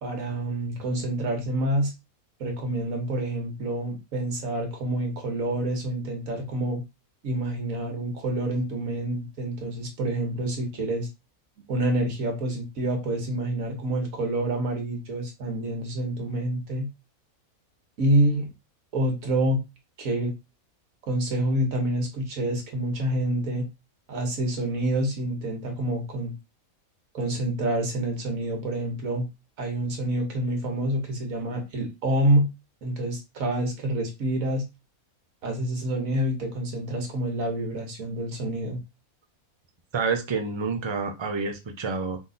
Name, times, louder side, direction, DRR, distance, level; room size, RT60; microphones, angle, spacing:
voice 1, 0.0-1.9 2.4-6.8 7.2-11.1 11.7-16.9 18.0-18.5 18.9-19.6 20.0-20.3 21.1-23.7 24.1-26.3 27.1-29.3 29.6-32.5 32.8-34.7 35.4-38.8, right 1 dB, 70° right, 1.6 m, -27 dB
voice 2, 39.9-42.2, right 4 dB, 35° right, 0.4 m, -28 dB
3.8 x 2.8 x 3.9 m
omnidirectional pair, 1.5 m